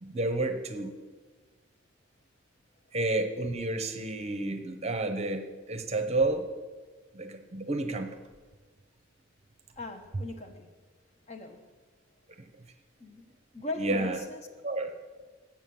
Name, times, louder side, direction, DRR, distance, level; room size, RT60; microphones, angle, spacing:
voice 1, 0.0-1.0 2.9-6.5 7.1-8.2 13.7-14.2 14.6-14.9, right 2 dB, 35° right, 7 dB, 0.8 m, -30 dB
voice 2, 9.8-10.7 11.3-11.7 13.0-14.4, left 2 dB, 35° left, 5 dB, 0.9 m, -39 dB
7.4 x 7.0 x 7.7 m, 1.4 s
head